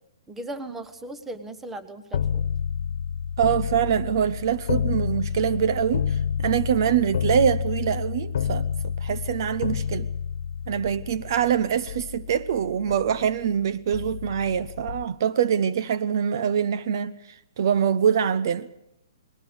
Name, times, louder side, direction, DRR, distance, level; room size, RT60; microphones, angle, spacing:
voice 1, 0.3-2.4, right 1 dB, 10° right, 1.2 m, -37 dB
sound 1, 2.1-13.5 13.9-15.1, left 7 dB, 65° left, 1.3 m, -29 dB
voice 2, 3.4-8.7 9.0-10.1 10.7-17.2 17.6-18.7, right 8 dB, 55° right, 0.8 m, -24 dB
20.0 x 17.5 x 8.1 m
hypercardioid pair, 150°, 2 cm